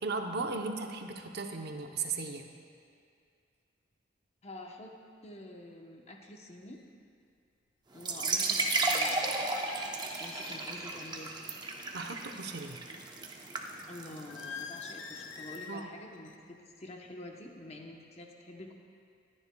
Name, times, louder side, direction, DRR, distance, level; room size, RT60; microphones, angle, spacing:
voice 1, 0.0-2.5 11.9-12.8 15.7-15.9, right 4 dB, 60° right, 4 dB, 0.7 m, -36 dB
voice 2, 4.4-5.0 5.2-6.8 7.9-9.5 10.2-11.3 13.9-18.7, left 1 dB, 35° left, 2 dB, 0.9 m, -48 dB
sound 1, 6.7-6.8 8.1-8.2 8.6-10.9 11.2-11.6 14.3-15.9 16.1-16.5 16.8-17.1, left 6 dB, 85° left, 0.5 m, -46 dB
sound 2, 8.0-15.6, right 3 dB, 25° right, 0.7 m, -34 dB
21.0 x 9.8 x 2.3 m, 2.3 s
head